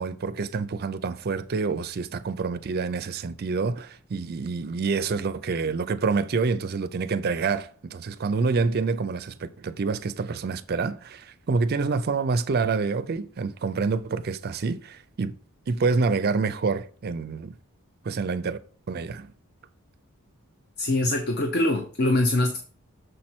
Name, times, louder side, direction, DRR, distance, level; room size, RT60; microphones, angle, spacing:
voice 1, 0.0-15.3 15.7-17.5 18.0-18.6 18.9-19.3, right 4 dB, 45° right, 0.4 m, -27 dB
voice 2, 20.8-22.6, left 1 dB, 45° left, 0.7 m, -23 dB
6.6 x 4.3 x 4.4 m
head